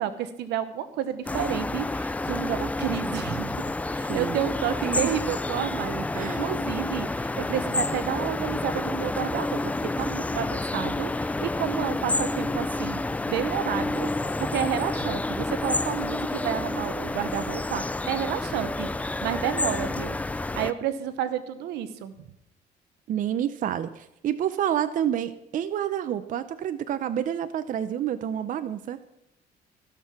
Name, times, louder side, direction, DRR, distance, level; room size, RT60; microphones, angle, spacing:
voice 1, 0.0-3.6 3.9-14.1 14.4-20.2 20.5-22.1, right 10 dB, 85° right, 12 dB, 1.1 m, -31 dB
sound 1, 1.3-20.7, left 2 dB, 10° left, 0.4 m, -29 dB
voice 2, 4.8-5.1 6.1-6.4 23.1-29.2, right 10 dB, 50° right, 12 dB, 0.6 m, -29 dB
15.5 x 6.6 x 5.9 m, 0.84 s
cardioid pair, 110°, 17 cm